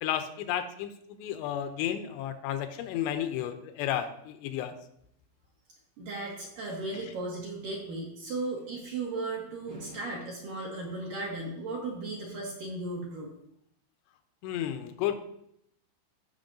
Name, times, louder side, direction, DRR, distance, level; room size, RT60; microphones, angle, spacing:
voice 1, 0.0-4.8 6.9-7.1 14.4-15.2, left 10 dB, 85° left, 8 dB, 2.7 m, -32 dB
voice 2, 6.0-13.3, right 2 dB, 65° right, -3 dB, 2.3 m, -36 dB
15.0 x 5.9 x 2.6 m, 0.74 s
omnidirectional pair, 5.0 m